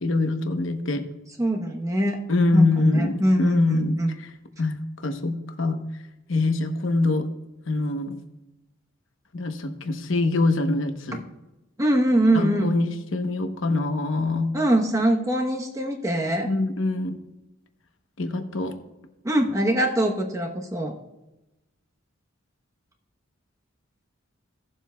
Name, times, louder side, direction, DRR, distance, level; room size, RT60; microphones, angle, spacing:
voice 1, 0.0-1.0 2.3-4.3 4.6-5.8 6.3-7.3 7.7-8.2 9.3-11.2 12.3-14.5 16.4-17.2 18.2-18.7, left 2 dB, 65° left, 6 dB, 0.9 m, -24 dB
voice 2, 1.4-2.2 2.5-4.2 11.8-12.7 14.5-16.5 19.2-20.9, right 1 dB, 15° right, 2 dB, 0.9 m, -23 dB
18.0 x 7.4 x 2.3 m, 1.0 s
head